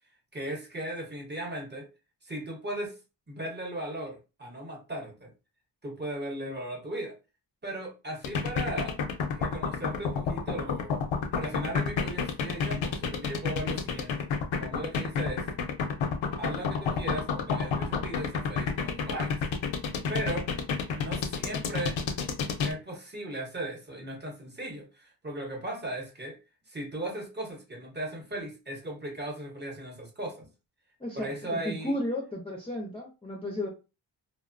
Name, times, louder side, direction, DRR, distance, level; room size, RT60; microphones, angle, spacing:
voice 1, 0.3-1.9 2.2-3.0 3.3-5.3 5.8-7.2 7.6-9.0 9.3-11.0 11.3-14.3 14.6-15.4 16.4-19.3 20.1-20.5 21.0-22.0 22.6-26.4 26.7-30.5 31.1-32.0, right 1 dB, 25° right, 0 dB, 0.8 m, -37 dB
sound 1, 8.2-22.7, left 5 dB, 85° left, 0.6 m, -29 dB
voice 2, 31.0-33.7, left 1 dB, 15° left, -2 dB, 0.4 m, -33 dB
2.9 x 2.0 x 2.5 m, 0.29 s
wide cardioid pair, 140°, 45 cm